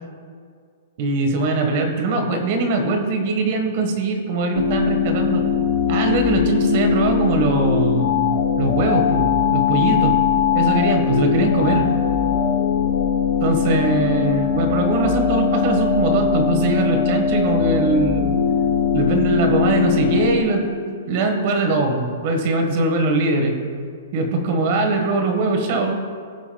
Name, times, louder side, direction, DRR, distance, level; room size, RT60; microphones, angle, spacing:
voice 1, 1.0-5.4 5.9-10.2 10.5-11.9 13.4-18.3 18.9-23.6 24.1-26.0, right 3 dB, 45° right, 4 dB, 1.4 m, -21 dB
sound 1, 4.5-20.4, left 7 dB, 75° left, 0.9 m, -20 dB
18.5 x 7.1 x 2.3 m, 2.2 s
hypercardioid pair, 155°, 0 cm